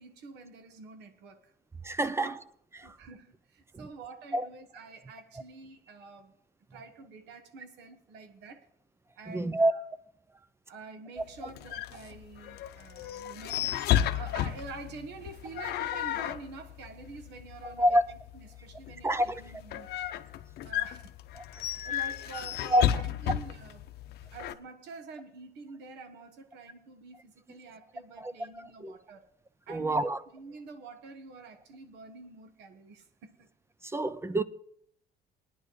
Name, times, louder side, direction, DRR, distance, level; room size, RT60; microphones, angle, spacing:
voice 1, 0.0-1.5 2.2-2.3 2.7-6.3 6.7-8.7 9.2-9.8 10.7-13.8 14.1-20.1 20.6-21.1 21.8-23.8 24.3-29.3 29.7-33.5, right 4 dB, 85° right, 1.3 m, -47 dB
voice 2, 1.8-2.3 2.8-3.0 3.7-3.9 4.3-4.5 9.3-9.7 17.6-18.0 19.0-19.4 21.3-21.4 22.7-22.9 28.2-29.0 29.7-30.2 33.8-34.4, right 1 dB, 15° right, 0.5 m, -27 dB
sound 1, 11.2-24.5, left 11 dB, 70° left, 0.7 m, -34 dB
20.5 x 9.8 x 3.1 m
cardioid pair, 110°, 17 cm